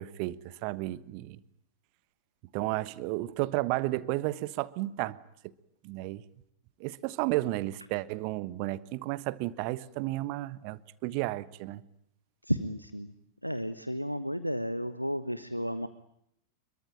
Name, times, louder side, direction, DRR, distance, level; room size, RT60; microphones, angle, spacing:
voice 1, 0.0-1.4 2.5-5.2 5.8-6.2 6.8-11.8, right 18 dB, 45° right, 1.3 m, -32 dB
voice 2, 12.5-13.1 13.4-15.9, equal, 90° left, 1.2 m, -32 dB
26.0 x 23.0 x 9.0 m
figure-of-eight pair, 90°, 0 cm